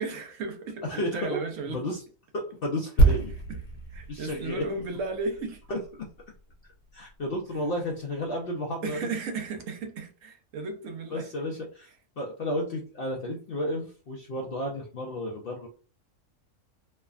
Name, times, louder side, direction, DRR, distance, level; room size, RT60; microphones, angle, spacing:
voice 1, 0.0-1.8 3.5-3.6 3.9-5.6 8.8-11.3, right 3 dB, 75° right, 1.0 m, -34 dB
voice 2, 0.8-2.0 2.3-3.3 4.1-4.7 5.7-6.1 6.9-9.0 11.1-11.9 12.2-15.7, left 1 dB, 65° left, 0.6 m, -32 dB
sound 1, 3.0-6.6 6.9-7.1, right 3 dB, 80° left, 1.1 m, -26 dB
3.2 x 2.1 x 2.3 m
omnidirectional pair, 1.4 m